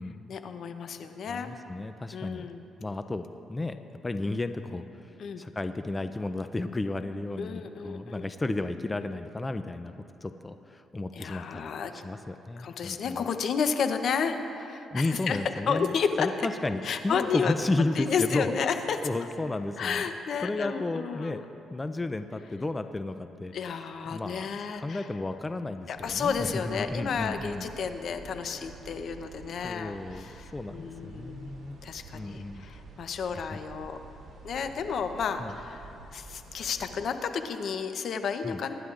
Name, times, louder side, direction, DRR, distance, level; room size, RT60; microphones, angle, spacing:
voice 1, 0.3-1.5 2.1-2.6 5.2-5.4 7.4-8.2 11.2-11.9 12.6-15.4 15.7-16.3 16.8-17.5 18.0-19.0 19.8-21.4 23.5-25.0 25.9-31.5 31.8-34.0 34.4-38.7, left 6 dB, 60° left, 8 dB, 0.8 m, -31 dB
voice 2, 1.3-2.5 2.8-9.9 10.2-13.3 14.9-15.9 16.2-18.6 19.0-20.0 20.4-23.5 24.1-24.5 24.7-27.7 28.5-28.7 29.6-31.8 32.1-32.7 33.4-33.6 35.4-35.5 38.4-38.6, left 2 dB, 20° left, 9 dB, 0.4 m, -33 dB
sound 1, 26.0-37.1, right 3 dB, 70° right, 2.7 m, -49 dB
24.0 x 11.0 x 2.5 m, 2.9 s
cardioid pair, 90°, 0 cm